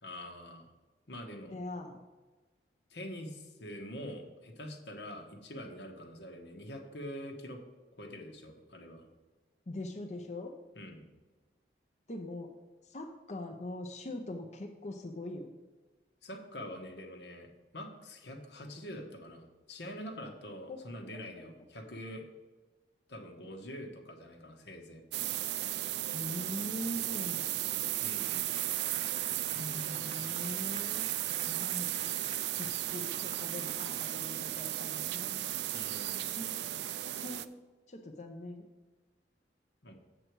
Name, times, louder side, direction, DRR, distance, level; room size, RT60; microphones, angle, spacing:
voice 1, 0.0-0.7 1.1-1.6 2.9-7.6 8.0-9.0 10.7-11.0 16.2-17.5 17.7-19.4 19.7-22.2 23.1-25.0 28.0-28.4 35.7-36.3 39.8-40.0, equal, 80° left, 3 dB, 1.2 m, -45 dB
voice 2, 1.5-2.0 9.7-10.5 12.1-12.5 12.9-15.5 20.7-20.8 26.1-27.5 29.5-31.1 31.5-31.9 32.6-35.5 36.4-36.6 37.2-37.6 37.9-38.6, left 1 dB, 40° left, 2 dB, 0.6 m, -42 dB
sound 1, 25.1-37.5, right 13 dB, 75° right, 0.4 m, -35 dB
sound 2, 27.8-34.6, right 4 dB, 30° right, 0.6 m, -51 dB
7.6 x 6.5 x 4.6 m, 1.2 s
head